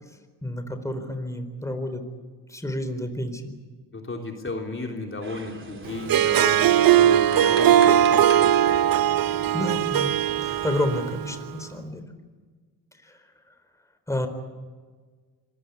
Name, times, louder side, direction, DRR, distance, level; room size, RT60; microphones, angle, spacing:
voice 1, 0.4-2.0 2.5-3.5 9.5-10.1 10.4-12.1 13.0-13.2 14.1-14.3, left 1 dB, 5° left, 8 dB, 4.4 m, -30 dB
voice 2, 3.9-8.5, left 3 dB, 30° left, 2 dB, 3.7 m, -34 dB
sound 1, 5.2-10.9, right 3 dB, 30° right, 3.6 m, -41 dB
Harp, 6.0-11.4, right 11 dB, 55° right, 0.8 m, -19 dB
25.5 x 17.5 x 9.6 m, 1.5 s
supercardioid pair, 65°, 42 cm